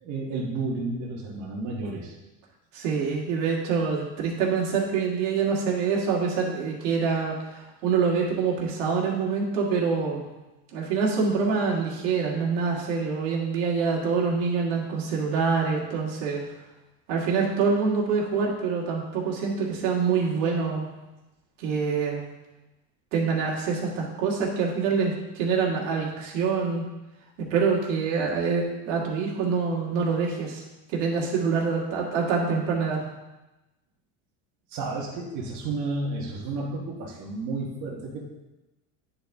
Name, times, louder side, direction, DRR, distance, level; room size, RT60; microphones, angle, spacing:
voice 1, 0.0-2.1 34.7-38.2, right 3 dB, 50° right, -4 dB, 1.4 m, -32 dB
voice 2, 2.7-10.2 10.7-16.4 17.1-20.9 21.6-22.2 23.1-26.8 27.5-30.6 30.9-33.0, right 5 dB, 80° right, -3 dB, 2.0 m, -25 dB
9.7 x 4.1 x 3.5 m, 1.0 s
supercardioid pair, 130°, 38 cm